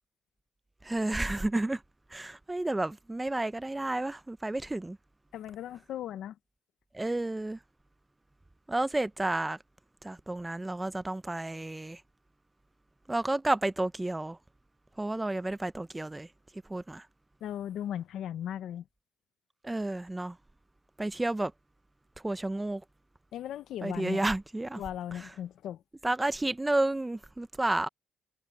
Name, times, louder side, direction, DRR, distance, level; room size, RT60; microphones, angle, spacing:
voice 1, 0.8-1.8 2.1-5.0 6.9-7.6 8.7-9.6 10.0-12.0 13.1-14.4 15.0-16.3 16.7-17.1 19.6-20.4 21.0-21.5 22.2-22.8 23.8-24.8 25.1-25.3 26.0-27.9, right 2 dB, 15° right, 0.8 m, -31 dB
voice 2, 5.3-6.4 17.4-18.9 23.3-24.2 24.8-25.8, left 10 dB, 75° left, 0.9 m, -37 dB
cardioid pair, 90°, 0 cm